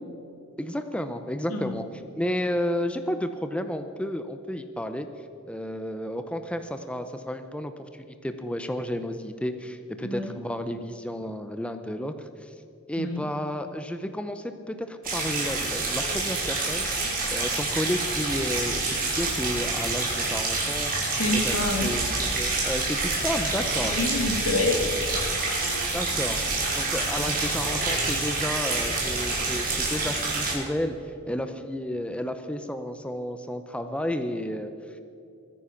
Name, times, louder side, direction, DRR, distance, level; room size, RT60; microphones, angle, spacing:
voice 1, 0.6-1.9 2.2-5.1 5.5-12.5 12.9-21.5 21.8-24.0 25.9-26.4 26.7-35.0, equal, 5° left, 8 dB, 0.6 m, -32 dB
voice 2, 10.0-10.3 13.0-13.2 17.0-17.2 21.2-21.9 23.8-24.9 25.2-25.9, left 2 dB, 75° left, 4 dB, 2.4 m, -28 dB
sound 1, 15.0-30.5, right 3 dB, 45° right, 4.7 m, -27 dB
22.5 x 10.0 x 5.9 m, 2.6 s
head